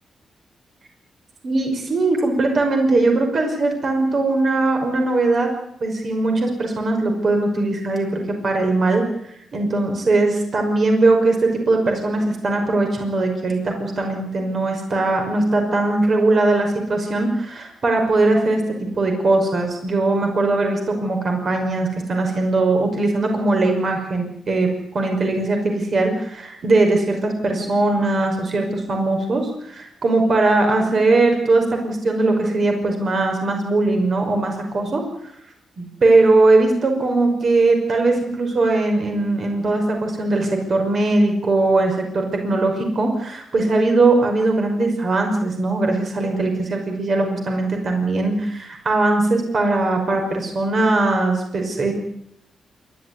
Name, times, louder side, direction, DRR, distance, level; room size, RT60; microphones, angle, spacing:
voice 1, 1.4-5.5 5.8-9.0 9.5-35.0 35.8-51.9, right 2 dB, 50° right, 3 dB, 5.6 m, -20 dB
27.5 x 13.0 x 9.7 m, 0.74 s
cardioid pair, 100°, 0 cm